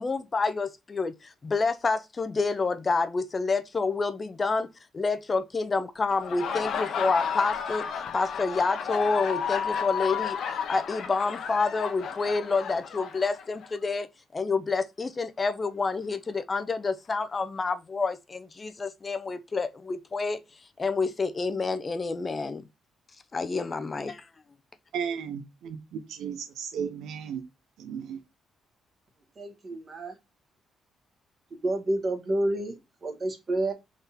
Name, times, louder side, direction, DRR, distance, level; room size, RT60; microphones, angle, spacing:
voice 1, 0.0-14.1 14.3-20.4 20.8-22.6 23.3-24.3, left 4 dB, 30° left, 0.5 m, -28 dB
Laughter, 6.1-13.7, left 7 dB, 70° left, 0.7 m, -32 dB
voice 2, 24.9-27.4 27.8-28.2, right 7 dB, 80° right, 0.6 m, -35 dB
voice 3, 29.3-30.1 31.5-33.7, right 1 dB, 35° right, 1.7 m, -29 dB
3.7 x 3.4 x 4.1 m
cardioid pair, 90°, 0 cm